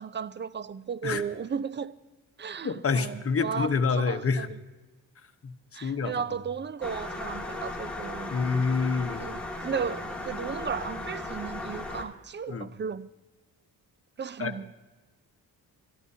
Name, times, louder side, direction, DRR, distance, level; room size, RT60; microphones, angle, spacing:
voice 1, 0.0-2.0 2.4-4.6 5.7-8.3 9.2-13.1 14.2-14.7, right 6 dB, 30° right, 0.5 m, -35 dB
voice 2, 2.6-4.5 5.4-5.5 5.8-6.1 8.3-9.2 12.5-12.7 14.4-14.5, left 5 dB, 35° left, 1.2 m, -27 dB
sound 1, 6.8-12.0, left 2 dB, 5° left, 2.1 m, -36 dB
23.5 x 13.5 x 2.8 m
cardioid pair, 100°, 37 cm